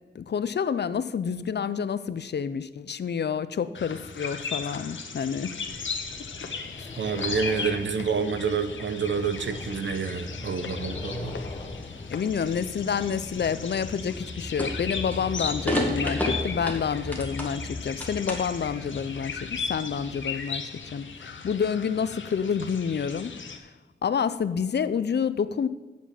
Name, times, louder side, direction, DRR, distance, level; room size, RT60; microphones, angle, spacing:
voice 1, 0.1-5.5 12.1-23.3 24.0-25.7, left 7 dB, 60° left, 14 dB, 0.5 m, -28 dB
sound 1, 3.7-23.6, left 5 dB, 85° left, 0.9 m, -37 dB
sound 2, 5.6-20.2, left 2 dB, 25° left, 0.9 m, -40 dB
voice 2, 7.0-11.4, right 5 dB, 75° right, 10 dB, 0.8 m, -28 dB
sound 3, 10.3-10.7 11.1-12.7 13.0-13.5 14.0-14.3 14.6-15.2 15.7-17.6 17.9-18.6, left 1 dB, 10° left, 1.7 m, -31 dB
9.1 x 7.3 x 5.7 m, 1.2 s
wide cardioid pair, 110°, 20 cm